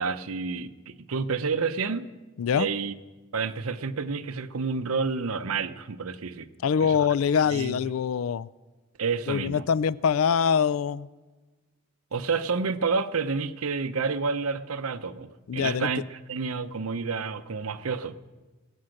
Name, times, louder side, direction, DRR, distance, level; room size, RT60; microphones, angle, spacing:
voice 1, 0.0-2.1 2.5-2.9 3.3-6.5 6.8-7.1 7.5-7.8 9.0-9.7 12.1-18.1, right 4 dB, 90° right, 0.8 m, -29 dB
voice 2, 2.4-2.7 6.6-8.5 9.3-11.1 15.5-15.9, left 7 dB, 75° left, 0.4 m, -24 dB
21.5 x 8.8 x 6.5 m
head